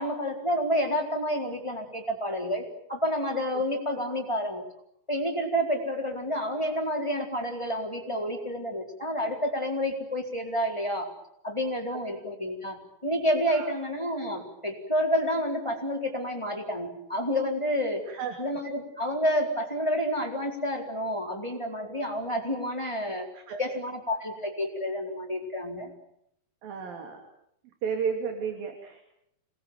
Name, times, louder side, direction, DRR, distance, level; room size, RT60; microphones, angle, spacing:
voice 1, 0.0-4.6 5.1-11.1 11.4-18.1 18.4-23.3 23.6-25.9, equal, 5° left, 2 dB, 3.8 m, -29 dB
voice 2, 18.1-18.4 23.3-23.6 26.6-27.2 27.8-29.0, right 6 dB, 60° right, 4 dB, 4.4 m, -33 dB
27.5 x 21.5 x 9.1 m, 0.77 s
omnidirectional pair, 4.8 m